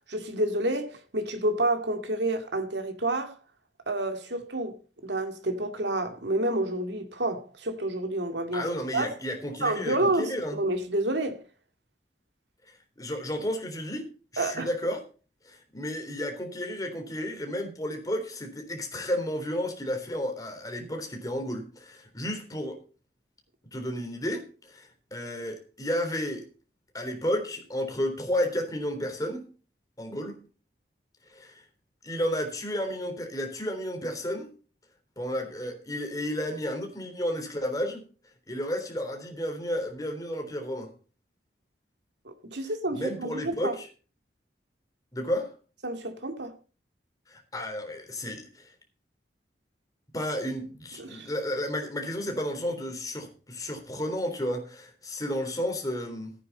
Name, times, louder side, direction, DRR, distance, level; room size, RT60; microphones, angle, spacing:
voice 1, 0.1-3.3 3.9-4.8 5.0-8.7 8.9-9.1 9.6-11.4 14.4-14.7 42.3-43.8 45.8-46.5 51.0-51.3, right 1 dB, 85° right, 2.3 m, -29 dB
voice 2, 8.5-10.6 12.7-14.1 14.3-15.0 15.4-22.8 23.7-26.4 26.9-29.5 30.0-30.4 31.3-31.6 32.0-34.5 35.2-38.0 38.5-40.9 42.9-43.9 45.1-45.5 47.3-48.7 50.1-56.3, equal, 20° left, 3.7 m, -32 dB
14.5 x 9.4 x 4.2 m
head